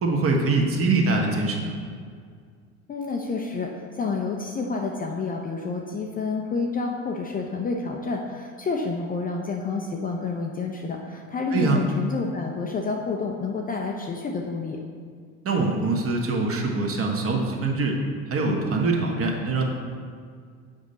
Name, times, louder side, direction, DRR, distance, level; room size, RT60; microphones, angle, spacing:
voice 1, 0.0-1.7 11.5-11.8 15.4-18.0 18.3-19.6, right 3 dB, 30° right, 1 dB, 1.4 m, -23 dB
voice 2, 2.9-14.8, left 4 dB, 20° left, 1 dB, 0.6 m, -29 dB
7.9 x 5.2 x 4.1 m, 2.1 s
figure-of-eight pair, 75°, 43 cm